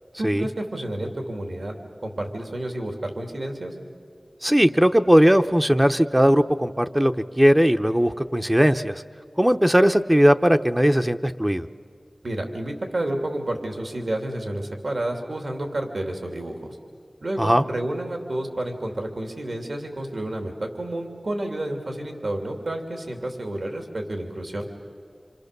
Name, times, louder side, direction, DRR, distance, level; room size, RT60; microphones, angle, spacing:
voice 1, 0.2-1.7 2.0-3.7 12.2-16.8 17.2-24.7, right 1 dB, 75° right, 3 dB, 3.0 m, -30 dB
voice 2, 4.4-9.0 9.4-11.7 17.4-17.6, equal, 10° right, 7 dB, 0.8 m, -18 dB
27.0 x 26.5 x 6.8 m, 2.1 s
wide cardioid pair, 50°, 0 cm